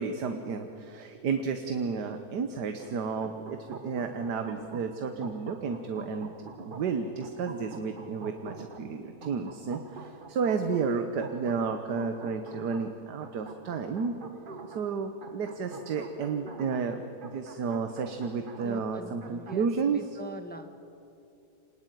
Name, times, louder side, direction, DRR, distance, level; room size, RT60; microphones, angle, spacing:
voice 1, 0.0-14.2 14.7-20.0, right 5 dB, 85° right, 7 dB, 1.7 m, -32 dB
sound 1, 2.8-19.7, right 3 dB, 35° right, 1.2 m, -46 dB
voice 2, 16.2-16.5 18.6-20.7, right 1 dB, 5° left, 7 dB, 1.1 m, -43 dB
27.5 x 19.5 x 9.2 m, 2.7 s
omnidirectional pair, 1.7 m